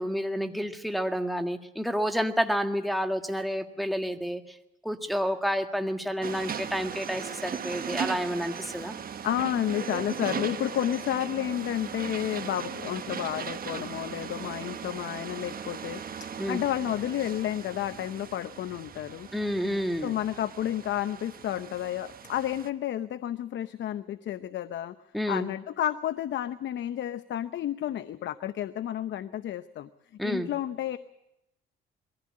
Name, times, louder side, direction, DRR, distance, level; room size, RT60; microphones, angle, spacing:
voice 1, 0.0-4.4 4.8-8.9 16.4-16.6 19.3-20.2 25.1-25.5 30.2-30.5, equal, ahead, 5 dB, 1.8 m, -29 dB
sound 1, 6.2-22.7, right 7 dB, 45° right, 1.2 m, -38 dB
voice 2, 9.2-19.3 20.0-25.0 25.3-29.9 30.2-31.0, left 11 dB, 70° left, 12 dB, 0.8 m, -31 dB
22.0 x 15.5 x 8.6 m, 0.87 s
cardioid pair, 90°, 20 cm